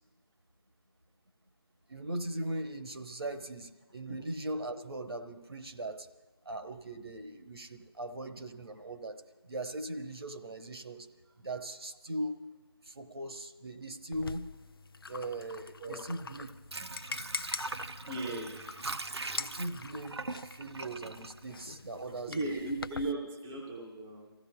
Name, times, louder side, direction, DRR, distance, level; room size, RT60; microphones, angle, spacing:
voice 1, 1.9-6.1 6.4-11.1 11.4-12.4 12.8-14.5 15.1-16.5 19.4-22.6, right 1 dB, 70° right, 7 dB, 1.0 m, -39 dB
sound 1, 14.1-23.1, left 4 dB, 60° left, 0.4 m, -44 dB
Water / Sink (filling or washing), 16.3-22.2 22.6-22.7, right 2 dB, 85° right, 0.6 m, -41 dB
voice 2, 18.1-18.5 22.0-24.3, right 2 dB, 5° right, -4 dB, 0.5 m, -37 dB
29.0 x 15.0 x 2.2 m, 1.2 s
figure-of-eight pair, 160°, 13 cm